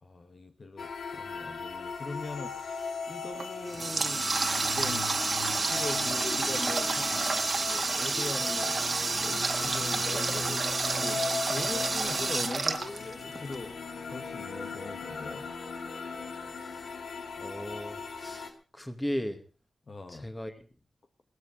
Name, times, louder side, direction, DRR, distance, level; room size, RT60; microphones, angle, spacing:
voice 1, 0.0-5.1 5.6-7.1 7.7-8.8 9.1-10.7 11.0-13.7 14.1-15.4 19.9-20.3, left 3 dB, 50° left, 7 dB, 1.5 m, -41 dB
sound 1, 0.8-18.5, left 4 dB, 75° left, 2.1 m, -38 dB
Water tap faucet, 3.4-13.6, right 3 dB, 50° right, 1.8 m, -29 dB
voice 2, 16.6-16.9 17.4-19.4 20.1-20.7, equal, 15° left, 9 dB, 2.2 m, -37 dB
17.5 x 13.5 x 5.0 m, 0.35 s
cardioid pair, 75°, 0 cm